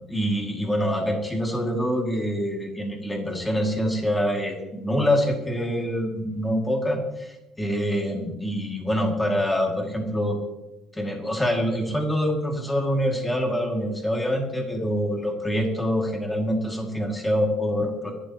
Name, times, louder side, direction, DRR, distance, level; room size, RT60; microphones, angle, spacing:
voice 1, 0.1-10.4 10.9-18.1, equal, 5° left, 1 dB, 2.1 m, -25 dB
26.0 x 11.5 x 2.9 m, 0.95 s
cardioid pair, 175°, 0 cm